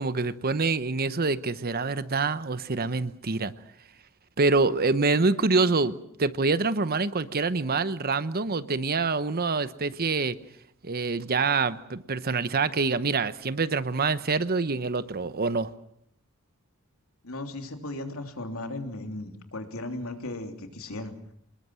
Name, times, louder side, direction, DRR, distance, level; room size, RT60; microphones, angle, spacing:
voice 1, 0.0-3.5 4.4-10.4 10.8-15.7, right 4 dB, 45° right, 14 dB, 1.0 m, -26 dB
voice 2, 17.2-21.1, left 2 dB, 75° left, 5 dB, 3.2 m, -36 dB
26.0 x 21.0 x 7.7 m, 0.73 s
head